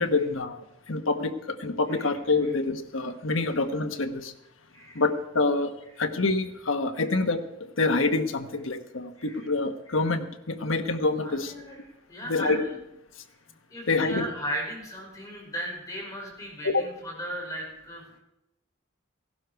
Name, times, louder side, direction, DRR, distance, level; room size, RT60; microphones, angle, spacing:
voice 1, 0.0-4.3 4.9-5.7 6.0-7.4 7.8-11.5 12.3-12.6 13.9-14.3 16.6-16.8, left 3 dB, 80° left, 7 dB, 1.2 m, -26 dB
voice 2, 4.7-5.0 7.0-7.2 9.2-9.4 11.2-11.8 12.1-12.7 13.7-18.0, right 1 dB, 15° left, -2 dB, 5.1 m, -36 dB
17.0 x 12.0 x 4.7 m, 0.89 s
head